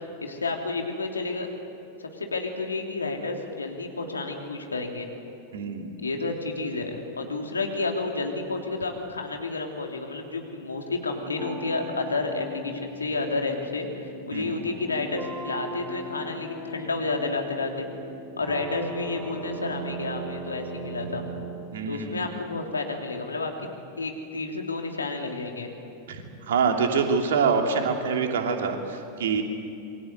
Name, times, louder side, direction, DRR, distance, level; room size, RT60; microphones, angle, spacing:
voice 1, 0.0-5.1 6.0-17.9 18.4-21.2 21.9-25.7, left 3 dB, 75° left, 2 dB, 3.2 m, -31 dB
voice 2, 5.5-6.0 14.3-14.6 21.7-22.3 26.1-29.4, right 5 dB, 60° right, 3 dB, 3.0 m, -26 dB
sound 1, 11.4-21.6, right 1 dB, 30° right, 5.4 m, -38 dB
27.5 x 23.0 x 8.1 m, 2.6 s
figure-of-eight pair, 90°, 0 cm